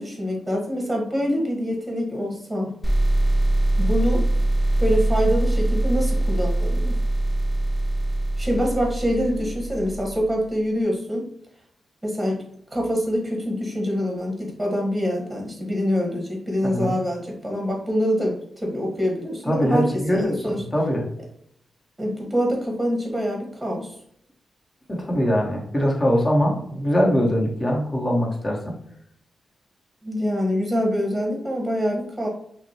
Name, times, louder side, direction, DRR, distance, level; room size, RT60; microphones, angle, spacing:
voice 1, 0.0-2.7 3.8-4.2 4.8-7.0 8.4-11.3 12.0-12.4 12.7-20.6 22.0-23.9 30.0-32.3, equal, 10° right, 0 dB, 1.4 m, -25 dB
sound 1, 2.8-10.4, right 1 dB, 10° left, 1.2 m, -22 dB
voice 2, 16.6-16.9 19.5-21.1 24.9-28.7, equal, 25° left, -1 dB, 1.4 m, -22 dB
5.7 x 2.2 x 2.9 m, 0.68 s
cardioid pair, 50°, 0 cm